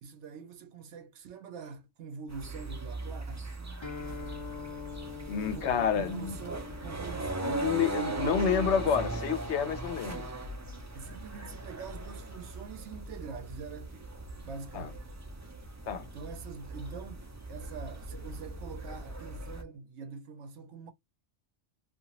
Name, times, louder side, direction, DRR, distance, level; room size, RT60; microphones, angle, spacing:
voice 1, 0.0-3.6 5.4-9.2 10.9-15.1 16.0-20.9, right 5 dB, 80° right, 0.9 m, -45 dB
sound 1, 2.3-19.6, right 2 dB, 25° right, 0.4 m, -39 dB
Guitar, 3.8-11.6, left 6 dB, 30° left, 0.7 m, -47 dB
voice 2, 5.3-6.3 7.4-10.3 14.7-14.9 15.9-16.1, left 7 dB, 75° left, 1.0 m, -29 dB
2.8 x 2.5 x 2.8 m
omnidirectional pair, 1.2 m